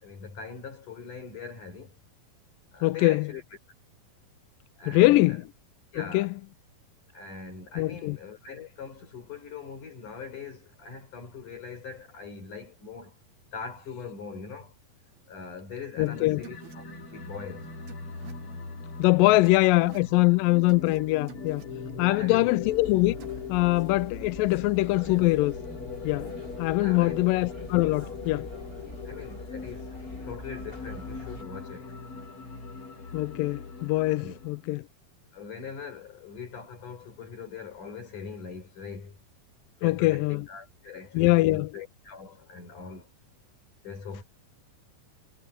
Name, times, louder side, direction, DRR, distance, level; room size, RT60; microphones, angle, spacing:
voice 1, 0.0-1.9 2.7-3.4 4.8-5.4 5.9-6.4 7.1-13.1 13.5-14.7 15.3-16.8 17.1-17.7 21.9-22.6 26.8-27.3 29.0-30.0 30.3-32.0 34.2-34.4 35.3-39.2 39.8-43.1 43.8-44.2, left 5 dB, 55° left, 6.4 m, -41 dB
voice 2, 2.8-3.3 4.9-5.4 6.0-6.3 7.8-8.2 16.0-16.5 19.0-21.6 22.0-23.2 23.5-25.5 26.0-26.3 26.6-28.5 33.1-34.8 39.8-40.4 41.1-41.7, left 20 dB, 80° left, 2.1 m, -23 dB
sound 1, 16.0-34.6, left 5 dB, 35° left, 4.8 m, -40 dB
sound 2, 16.0-16.1 16.4-16.7 17.9-18.3 19.4-20.1 20.7-21.0 21.3-21.7 23.2-23.4, right 10 dB, 75° right, 3.8 m, -49 dB
sound 3, 22.6-31.4, left 1 dB, 15° left, 7.6 m, -44 dB
omnidirectional pair, 4.3 m